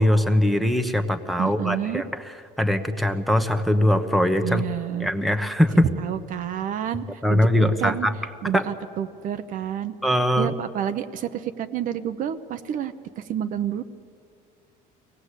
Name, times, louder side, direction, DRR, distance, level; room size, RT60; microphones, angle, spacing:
voice 1, 0.0-4.7 5.0-5.9 7.2-8.1 8.5-8.6 10.0-10.5, left 1 dB, ahead, 6 dB, 1.0 m, -21 dB
voice 2, 1.4-2.0 4.4-5.1 6.0-7.0 7.3-8.1 8.4-9.9 10.4-13.8, right 10 dB, 50° right, 9 dB, 0.9 m, -29 dB
24.5 x 18.0 x 8.3 m, 2.4 s
cardioid pair, 150°, 17 cm